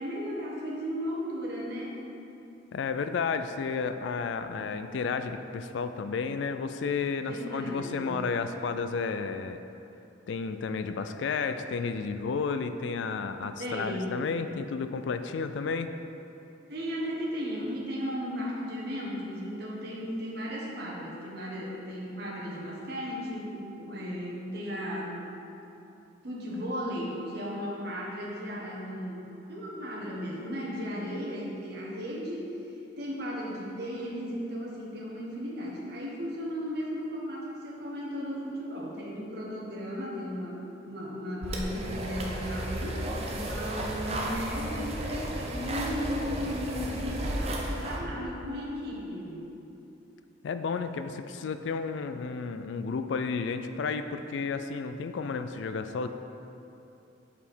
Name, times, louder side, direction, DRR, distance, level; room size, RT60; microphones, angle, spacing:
voice 1, 0.0-2.0 7.2-8.2 13.6-14.2 16.7-25.3 26.2-32.5 33.0-40.6 40.9-49.4, equal, 55° right, -5 dB, 1.4 m, -35 dB
voice 2, 2.7-9.6 10.3-15.9 50.4-56.1, left 5 dB, 70° left, 9 dB, 0.3 m, -32 dB
sound 1, 41.4-48.0, right 1 dB, 30° right, 0.6 m, -34 dB
6.5 x 5.4 x 4.5 m, 2.9 s
head